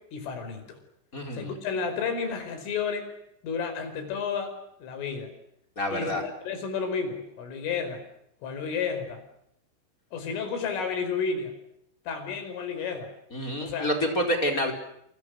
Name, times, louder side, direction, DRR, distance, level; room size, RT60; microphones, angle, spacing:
voice 1, 0.1-0.8 1.3-3.2 3.4-4.5 4.8-5.3 5.9-8.0 8.4-9.2 10.1-11.5 12.1-13.1 13.6-13.9, left 5 dB, 85° left, 7 dB, 7.5 m, -31 dB
voice 2, 1.1-1.5 5.8-6.2 13.3-14.7, equal, 15° left, 3 dB, 4.7 m, -28 dB
29.0 x 28.0 x 6.5 m, 0.76 s
omnidirectional pair, 5.6 m